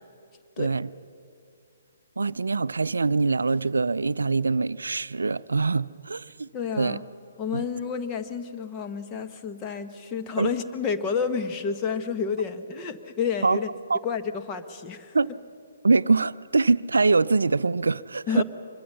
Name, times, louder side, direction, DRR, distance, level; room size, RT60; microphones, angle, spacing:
voice 1, 0.6-0.9 2.2-6.5 6.8-7.0 7.5-7.6 10.4-10.5 13.4-13.6 13.9-14.0 15.1-15.3 15.8-18.4, right 3 dB, 75° right, 0.5 m, -23 dB
voice 2, 6.5-7.0 7.4-13.7 14.0-15.2 18.3-18.4, left 6 dB, 25° left, 1.3 m, -30 dB
25.5 x 22.0 x 5.7 m
figure-of-eight pair, 130°, 0 cm